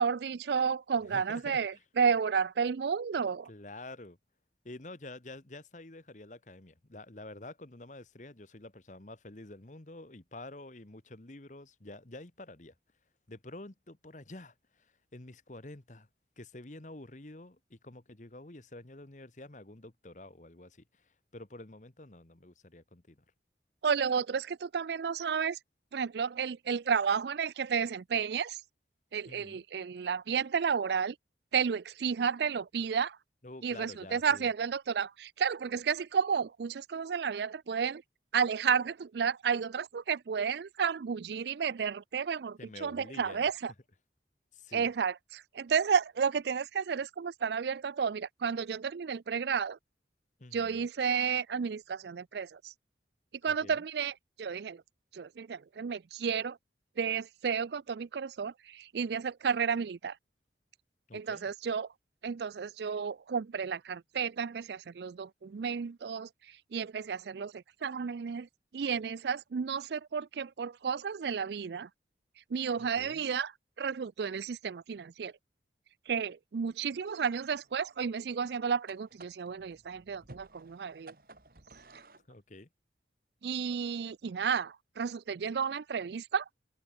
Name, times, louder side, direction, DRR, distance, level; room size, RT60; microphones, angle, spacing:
voice 1, 0.0-3.5 23.8-25.6 25.9-28.6 29.1-31.2 31.5-33.2 33.6-38.0 38.3-43.7 44.7-49.8 50.5-52.7 53.4-54.8 55.1-56.6 57.0-60.2 61.1-61.9 62.2-68.5 68.7-71.9 72.5-73.5 73.8-75.3 76.1-81.1 83.4-86.5, right 6 dB, 70° right, 0.4 m, -32 dB
voice 2, 1.1-1.8 3.5-4.2 4.6-12.7 13.3-16.1 16.4-23.2 29.3-29.6 33.4-34.5 42.6-43.5 44.5-44.9 50.4-50.9 53.4-53.8 61.1-61.5 72.8-73.3 82.3-82.7, left 2 dB, 45° left, 1.4 m, -49 dB
printer inkjet calibrating, 77.0-82.3, right 2 dB, 55° right, 2.5 m, -56 dB
head